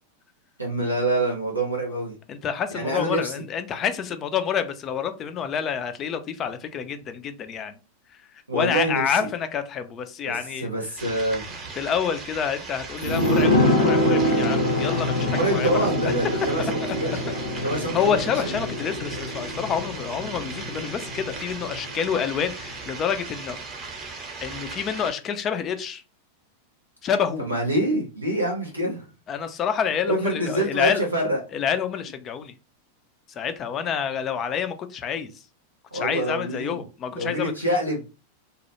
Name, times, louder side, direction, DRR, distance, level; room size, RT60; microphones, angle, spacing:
voice 1, 0.6-2.1 2.7-3.3 8.5-9.0 10.2-11.7 15.3-18.1 18.4-18.5 27.4-29.0 30.1-31.4 35.9-36.8 37.1-38.0, right 1 dB, 85° right, 0.6 m, -26 dB
voice 2, 2.3-7.7 8.1-8.3 8.5-10.7 11.7-16.1 16.6-17.2 17.5-23.6 24.0-26.0 27.0-27.4 29.3-31.1 31.5-32.5 33.3-35.4 35.9-37.5, left 7 dB, 30° left, 0.3 m, -28 dB
sound 1, 11.0-25.1, right 4 dB, 30° right, 0.7 m, -38 dB
sound 2, 13.0-22.3 22.6-22.7, left 1 dB, 75° left, 0.8 m, -25 dB
2.0 x 2.0 x 2.9 m
figure-of-eight pair, 90°, 0 cm